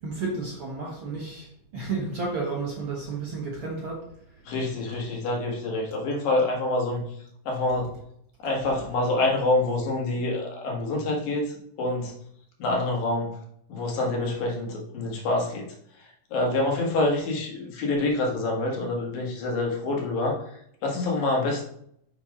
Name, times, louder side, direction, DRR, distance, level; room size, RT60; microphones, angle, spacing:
voice 1, 0.0-4.1, right 3 dB, 50° right, -3 dB, 1.7 m, -32 dB
voice 2, 4.5-7.0 7.5-7.9 8.4-12.1 12.6-13.4 13.7-15.7 16.3-20.4 20.8-21.6, left 2 dB, 85° left, -1 dB, 3.3 m, -26 dB
7.1 x 3.6 x 5.1 m, 0.69 s
omnidirectional pair, 3.9 m